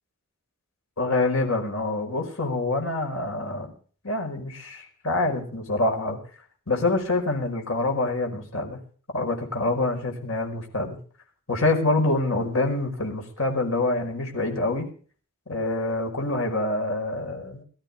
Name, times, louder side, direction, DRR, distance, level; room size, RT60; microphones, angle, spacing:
voice 1, 1.0-3.7 4.0-6.2 6.7-8.8 9.1-11.0 11.5-14.9 15.5-17.6, left 2 dB, 70° left, 3 dB, 5.1 m, -26 dB
22.5 x 13.5 x 3.6 m, 0.43 s
head